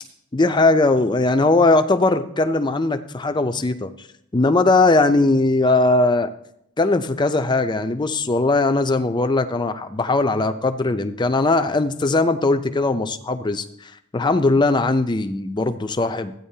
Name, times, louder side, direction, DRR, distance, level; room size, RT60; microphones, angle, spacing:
voice 1, 0.3-4.1 4.3-6.3 6.8-16.3, left 2 dB, 20° left, 9 dB, 0.5 m, -19 dB
14.5 x 9.4 x 2.7 m, 0.76 s
head